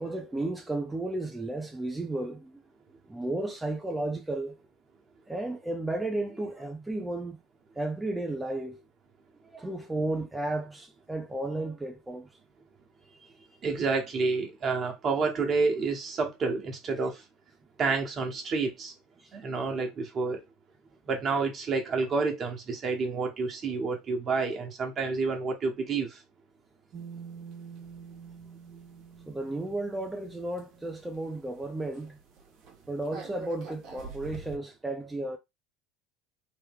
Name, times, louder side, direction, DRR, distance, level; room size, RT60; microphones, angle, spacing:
voice 1, 0.0-2.6 3.1-4.6 5.3-7.4 7.8-8.8 9.4-12.3 13.2-13.3 19.2-19.3 29.3-32.2 32.9-35.4, right 2 dB, 10° right, 0.6 m, -33 dB
voice 2, 13.6-17.2 17.8-18.9 19.3-20.4 21.0-26.2, right 4 dB, 40° right, 1.2 m, -29 dB
sound 1, 26.9-31.6 31.9-32.1 32.4-34.6, right 5 dB, 60° right, 1.1 m, -46 dB
3.1 x 2.2 x 3.5 m
hypercardioid pair, 85°, 0 cm